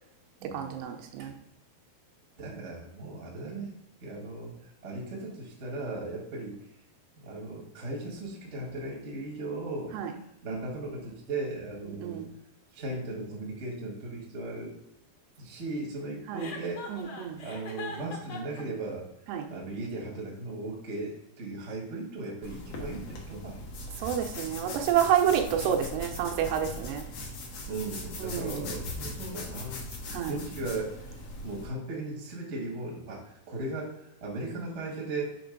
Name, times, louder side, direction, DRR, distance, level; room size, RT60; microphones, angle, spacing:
voice 1, 0.5-1.3 9.9-10.1 12.0-12.3 16.3-16.5 16.9-17.4 19.3-19.5 24.0-27.0 28.2-28.6 30.1-30.3, right 9 dB, 85° right, 4 dB, 2.9 m, -28 dB
voice 2, 2.4-3.7 4.0-4.5 4.8-6.6 7.2-9.9 10.4-12.2 12.7-14.7 15.4-17.1 17.4-19.1 19.5-23.6 27.7-29.8 30.3-30.9 31.4-35.2, right 2 dB, 65° right, -2 dB, 0.7 m, -37 dB
Chuckle chortle, 16.4-18.6, left 4 dB, 70° left, 1.4 m, -41 dB
sound 1, 22.4-31.7, left 2 dB, 90° left, 1.3 m, -40 dB
6.9 x 3.4 x 5.2 m, 0.82 s
omnidirectional pair, 4.7 m